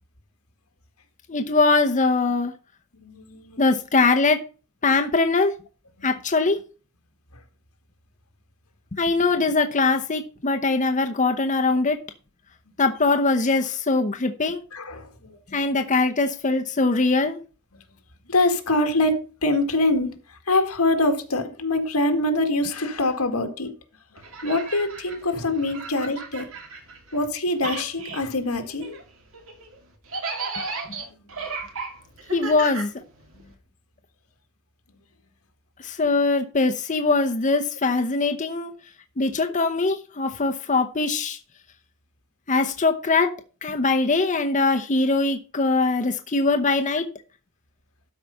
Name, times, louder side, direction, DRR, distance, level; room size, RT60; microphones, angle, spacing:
voice 1, 1.3-2.5 3.6-4.4 4.8-5.5 6.0-6.6 8.9-12.0 12.8-14.6 15.5-17.4 32.3-32.9 35.8-38.7 39.2-41.4 42.5-43.3 43.6-47.1, left 3 dB, 35° left, 0.8 m, -22 dB
voice 2, 3.0-3.6 6.0-6.1 14.7-15.4 17.7-17.8 18.3-20.2 20.5-23.7 24.4-26.5 27.1-29.0 33.3-33.5, left 2 dB, 90° left, 1.8 m, -24 dB
sound 1, 24.2-27.3 27.5-33.5, right 3 dB, 65° right, 2.5 m, -35 dB
12.5 x 4.9 x 5.5 m
head